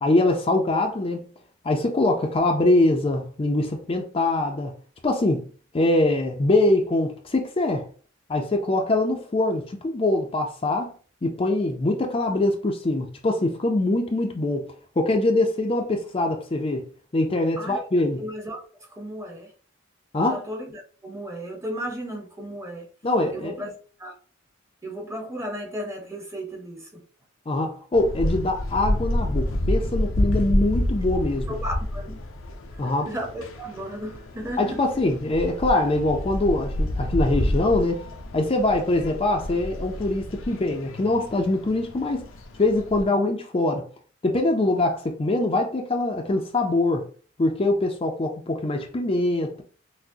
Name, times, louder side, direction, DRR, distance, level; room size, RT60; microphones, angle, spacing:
voice 1, 0.0-1.3 1.6-4.8 5.0-5.5 5.7-7.9 8.3-10.9 11.2-14.7 15.0-16.9 17.1-18.2 20.1-20.5 23.0-23.5 27.5-31.5 32.8-33.1 34.6-38.1 38.3-42.2 42.6-43.8 44.2-47.1 47.4-49.6, left 2 dB, 30° left, 0.4 m, -23 dB
voice 2, 18.2-19.5 20.1-22.9 23.3-23.7 24.0-24.1 24.8-27.0 31.5-32.2 33.0-34.8, equal, 15° right, 0.8 m, -34 dB
sound 1, 27.9-43.0, left 1 dB, 75° left, 0.6 m, -29 dB
5.9 x 2.1 x 2.7 m
head